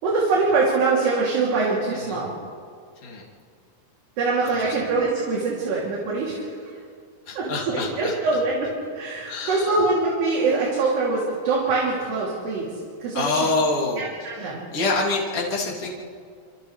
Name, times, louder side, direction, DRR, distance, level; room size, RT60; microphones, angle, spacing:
voice 1, 0.0-2.3 4.2-6.5 7.4-8.7 8.9-12.7 13.0-13.5 14.0-14.6, right 3 dB, 70° right, -5 dB, 5.1 m, -23 dB
voice 2, 7.3-8.1 9.3-9.7 13.1-14.1 14.7-15.9, left 3 dB, 35° left, -3 dB, 3.4 m, -25 dB
29.5 x 27.5 x 3.4 m, 2.1 s
omnidirectional pair, 5.0 m